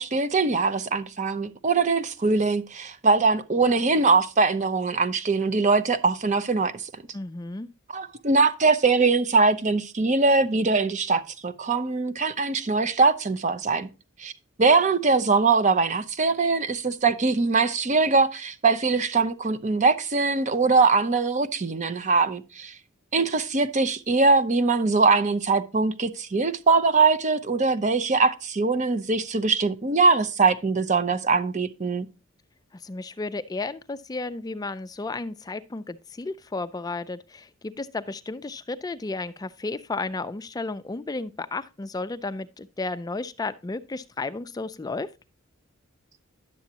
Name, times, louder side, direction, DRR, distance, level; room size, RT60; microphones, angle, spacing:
voice 1, 0.0-6.9 7.9-13.9 14.2-14.3 14.6-22.7 23.1-32.1, right 4 dB, 35° right, 0.6 m, -22 dB
voice 2, 7.1-7.7 32.8-45.1, left 3 dB, 20° left, 0.4 m, -33 dB
10.5 x 7.1 x 2.8 m
head